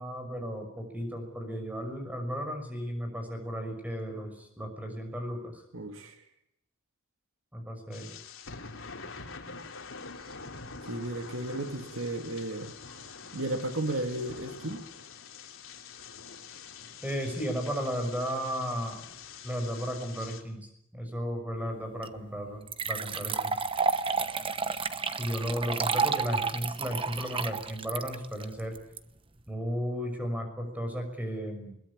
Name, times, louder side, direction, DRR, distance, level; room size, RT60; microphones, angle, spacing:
voice 1, 0.0-5.6 7.5-8.1 12.9-13.0 17.0-19.0 19.4-23.6 25.2-28.7 29.5-31.7, equal, 5° right, 5 dB, 6.0 m, -34 dB
voice 2, 5.7-6.2 10.8-12.7 13.3-14.8, right 1 dB, 70° right, 6 dB, 2.4 m, -34 dB
sound 1, 7.9-20.4, left 5 dB, 75° left, 3.0 m, -45 dB
sound 2, 22.0-22.1 22.7-29.0, right 5 dB, 25° right, 1.0 m, -30 dB
21.5 x 20.5 x 8.5 m, 0.77 s
head